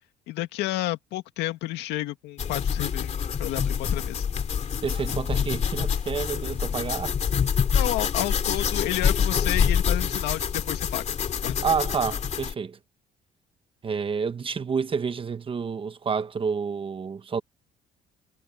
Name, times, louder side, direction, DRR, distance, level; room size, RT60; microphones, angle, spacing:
voice 1, 0.3-4.2 7.7-11.6, left 16 dB, 90° left, 2.1 m, -31 dB
sound 1, 2.4-12.5, left 7 dB, 40° left, 2.4 m, -26 dB
voice 2, 4.8-7.1 11.6-12.8 13.8-17.4, right 5 dB, 30° right, 1.2 m, -29 dB
cardioid pair, 110°, 17 cm